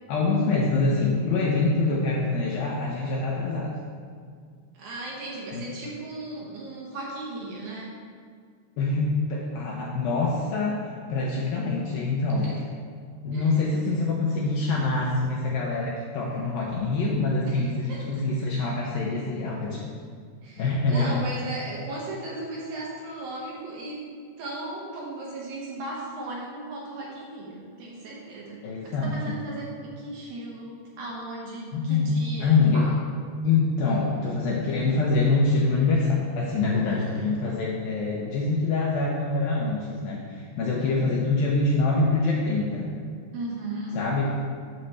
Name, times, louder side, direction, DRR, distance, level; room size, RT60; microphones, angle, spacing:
voice 1, 0.1-3.7 5.5-5.7 8.8-12.5 13.2-19.8 20.6-21.2 28.6-29.4 31.7-32.1 32.4-32.9 33.4-42.9 44.0-44.4, left 3 dB, 80° left, -3 dB, 2.1 m, -25 dB
voice 2, 4.7-8.0 12.4-12.6 13.3-13.7 17.4-18.2 20.4-24.1 24.4-33.0 43.3-44.0, right 2 dB, 70° right, -3 dB, 2.5 m, -36 dB
9.0 x 4.3 x 6.6 m, 2.1 s
omnidirectional pair, 5.1 m